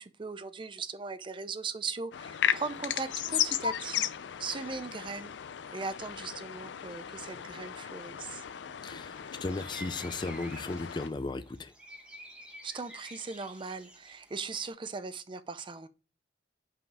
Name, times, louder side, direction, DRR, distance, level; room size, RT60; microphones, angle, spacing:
voice 1, 0.0-4.1 4.4-5.3 5.7-8.4 12.6-15.9, right 4 dB, 30° right, 0.5 m, -39 dB
sound 1, 2.1-11.1, left 9 dB, 85° left, 0.4 m, -35 dB
voice 2, 8.8-11.7, left 3 dB, 25° left, 0.4 m, -36 dB
sound 2, 9.0-14.7, right 1 dB, 5° right, 1.4 m, -51 dB
5.6 x 5.1 x 4.7 m
head